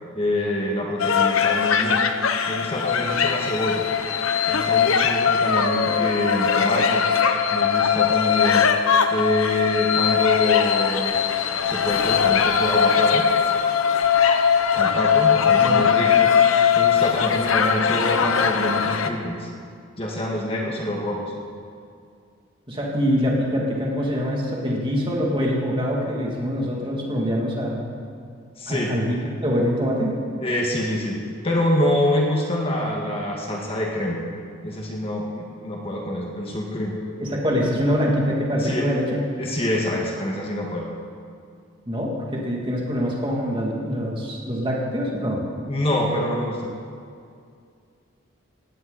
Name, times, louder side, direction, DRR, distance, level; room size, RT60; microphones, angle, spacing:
voice 1, 0.2-2.0 2.5-3.8 4.5-7.0 7.5-8.7 9.1-11.2 11.6-13.3 14.7-16.3 16.8-19.5 20.0-21.3 28.6-28.9 30.4-31.2 31.4-34.2 34.6-36.9 38.6-38.9 39.4-40.9 45.6-46.7, left 1 dB, 30° left, -1 dB, 1.9 m, -26 dB
sound 1, 1.0-19.1, left 7 dB, 85° left, 1.0 m, -20 dB
voice 2, 15.6-15.9 22.7-27.9 28.7-30.1 37.2-39.2 41.9-45.4, equal, 25° right, -3 dB, 2.9 m, -24 dB
18.5 x 16.5 x 4.3 m, 2.3 s
head